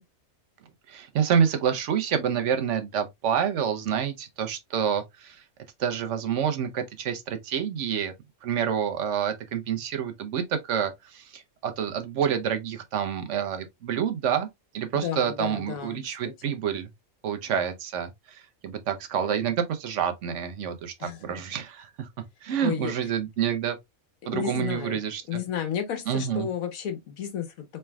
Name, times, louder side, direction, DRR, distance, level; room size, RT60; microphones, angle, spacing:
voice 1, 0.9-5.4 5.8-8.1 8.4-14.5 14.7-16.9 17.2-22.1 22.4-23.8 24.3-25.4 26.1-26.5, right 8 dB, 65° right, 0.9 m, -28 dB
voice 2, 15.0-16.5 21.0-21.2 22.6-22.9 24.2-25.0 25.3-27.6, left 8 dB, 80° left, 1.3 m, -32 dB
4.3 x 3.3 x 2.2 m
omnidirectional pair, 1.4 m